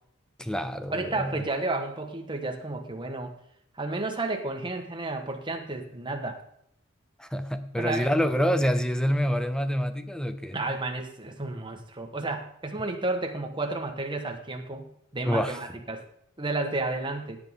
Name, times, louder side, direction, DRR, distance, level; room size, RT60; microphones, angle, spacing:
voice 1, 0.4-1.3 7.2-10.6 15.3-15.6, equal, 5° left, 9 dB, 0.6 m, -27 dB
voice 2, 0.9-3.3 3.7-6.4 7.8-8.1 10.5-16.0 16.4-17.4, right 2 dB, 25° right, 4 dB, 1.3 m, -32 dB
17.5 x 8.2 x 3.7 m, 0.71 s
head